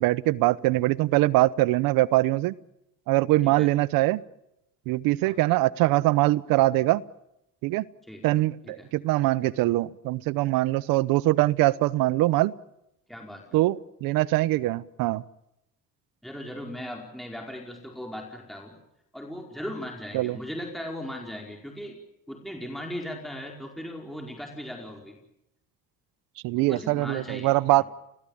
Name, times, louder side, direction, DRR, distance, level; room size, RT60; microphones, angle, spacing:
voice 1, 0.0-2.5 3.1-4.2 4.9-7.0 7.6-7.8 8.2-12.5 13.5-15.2 20.1-20.4 26.4-27.8, right 18 dB, 85° right, 19 dB, 1.0 m, -23 dB
voice 2, 13.1-13.4 16.2-18.8 19.1-22.0 22.3-25.2 26.5-27.8, equal, ahead, 1 dB, 4.8 m, -38 dB
30.0 x 20.0 x 8.7 m, 0.84 s
cardioid pair, 85°, 34 cm